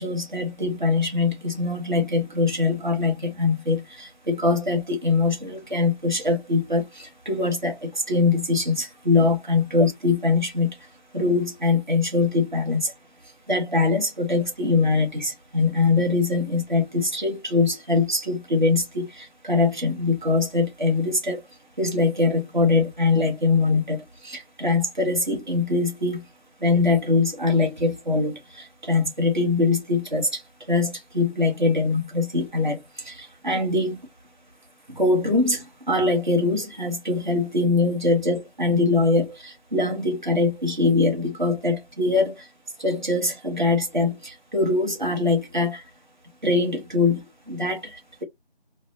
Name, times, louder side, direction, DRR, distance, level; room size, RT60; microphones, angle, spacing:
voice 1, 0.0-10.8 11.1-12.9 13.5-21.4 21.8-26.2 26.6-30.4 30.7-34.0 34.9-42.5 42.8-45.8 46.4-48.2, left 3 dB, 50° right, 0.8 m, -23 dB
2.6 x 2.0 x 2.7 m
figure-of-eight pair, 175°, 31 cm